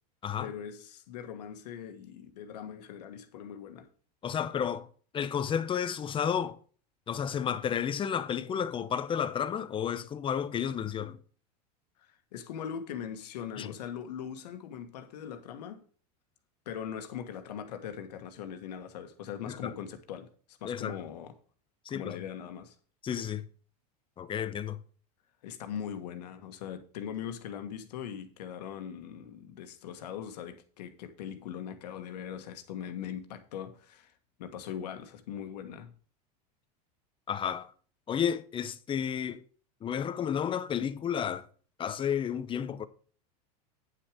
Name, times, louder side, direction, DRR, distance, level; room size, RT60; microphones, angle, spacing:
voice 1, 0.4-3.9 12.1-15.8 16.6-21.3 21.9-22.7 25.4-34.1 34.4-35.9, left 8 dB, 80° left, 1.5 m, -41 dB
voice 2, 4.2-4.9 5.1-6.6 7.1-11.2 13.6-13.7 19.5-19.7 20.6-21.0 21.9-22.2 23.0-23.5 24.2-24.8 37.3-37.7 38.1-39.4 39.8-41.5 41.8-42.9, left 8 dB, 25° left, 0.7 m, -32 dB
9.3 x 6.1 x 4.9 m
supercardioid pair, 120°, 21 cm